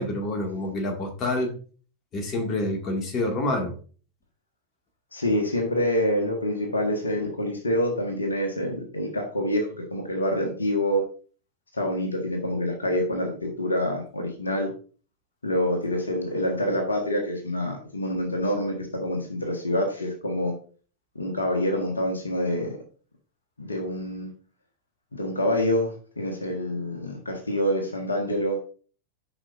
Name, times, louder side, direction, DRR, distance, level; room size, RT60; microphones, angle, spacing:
voice 1, 0.0-1.5 2.1-3.7, left 1 dB, 30° left, 2 dB, 2.1 m, -27 dB
voice 2, 5.1-11.0 11.7-14.7 15.4-20.5 21.1-22.8 23.6-24.3 25.1-28.6, left 1 dB, 75° left, 3 dB, 1.5 m, -26 dB
9.8 x 5.5 x 2.6 m, 0.39 s
figure-of-eight pair, 90°, 0 cm